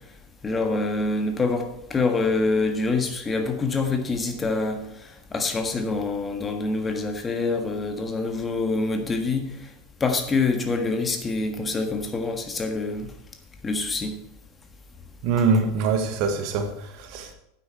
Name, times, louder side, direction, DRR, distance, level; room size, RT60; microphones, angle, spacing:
voice 1, 0.4-9.5 10.0-13.1 13.6-14.2, left 3 dB, 20° left, 1.5 m, -26 dB
voice 2, 15.2-17.3, right 4 dB, 50° right, 1.5 m, -24 dB
9.8 x 8.4 x 4.5 m
figure-of-eight pair, 85°, 0 cm